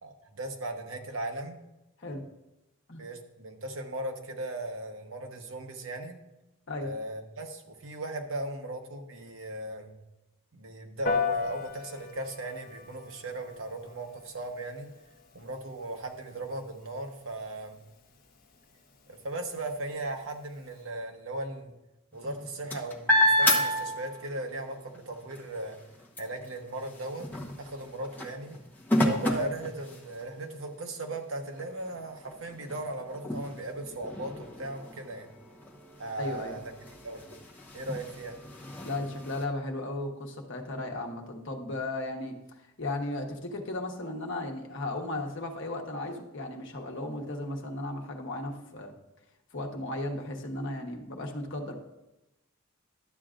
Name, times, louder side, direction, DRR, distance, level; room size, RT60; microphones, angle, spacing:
voice 1, 0.0-1.6 3.0-6.2 6.8-9.9 10.5-14.9 15.3-17.8 19.1-21.7 22.1-25.8 26.2-27.3 27.6-28.6 29.0-35.3 36.0-36.6 37.0-37.2 37.7-38.4, right 2 dB, 65° right, 4 dB, 1.0 m, -37 dB
Piano, 11.0-20.8, left 5 dB, 40° left, 0.8 m, -38 dB
sound 1, 22.1-24.5 24.9-30.4 31.0-31.1 31.5-39.4, equal, 10° left, 1.0 m, -31 dB
voice 2, 36.2-36.6 38.8-42.3 42.8-48.9 49.5-51.8, left 2 dB, 55° left, 1 dB, 1.1 m, -35 dB
11.5 x 7.7 x 2.5 m, 0.94 s
head